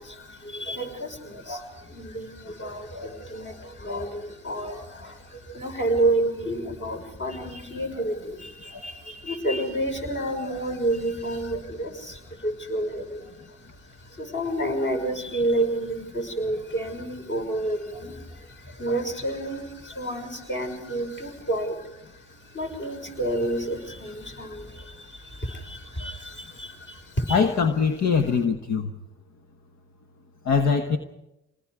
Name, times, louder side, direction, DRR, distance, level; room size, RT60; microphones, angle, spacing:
voice 1, 0.0-13.6 13.9-27.4, right 1 dB, 40° left, 6.1 m, -30 dB
voice 2, 27.3-28.9 30.4-31.0, left 5 dB, 65° left, 1.4 m, -22 dB
28.0 x 20.0 x 4.9 m
supercardioid pair, 70°, 31 cm